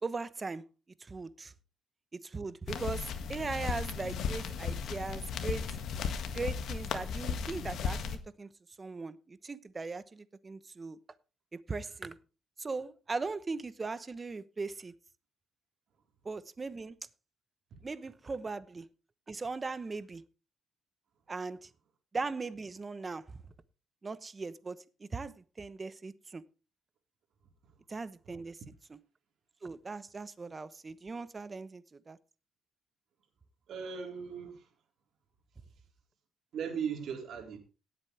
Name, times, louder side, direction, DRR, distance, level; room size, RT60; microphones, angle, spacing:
voice 1, 0.0-0.6 1.0-1.5 2.2-5.6 6.3-8.5 8.8-11.0 11.7-12.2 12.6-14.9 16.2-17.0 17.8-18.9 19.3-20.2 21.3-21.7 22.1-23.4 24.0-26.4 27.9-28.6 29.6-32.2, right 4 dB, 30° right, 1.0 m, -39 dB
sound 1, 2.7-8.2, left 6 dB, 75° left, 1.7 m, -35 dB
voice 2, 33.7-34.7 36.5-37.6, right 7 dB, 70° right, 4.0 m, -38 dB
18.0 x 8.2 x 3.4 m
cardioid pair, 90°, 0 cm